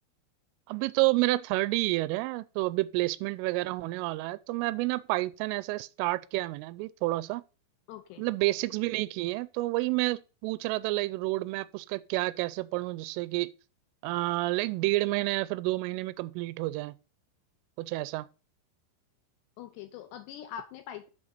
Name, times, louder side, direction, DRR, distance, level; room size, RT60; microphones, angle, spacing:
voice 1, 0.7-7.4 8.2-13.5 14.0-16.9 17.8-18.3, right 20 dB, 85° right, 3.1 m, -29 dB
voice 2, 7.9-8.3 19.6-21.1, left 10 dB, 80° left, 2.6 m, -43 dB
6.9 x 5.7 x 6.4 m
omnidirectional pair, 5.6 m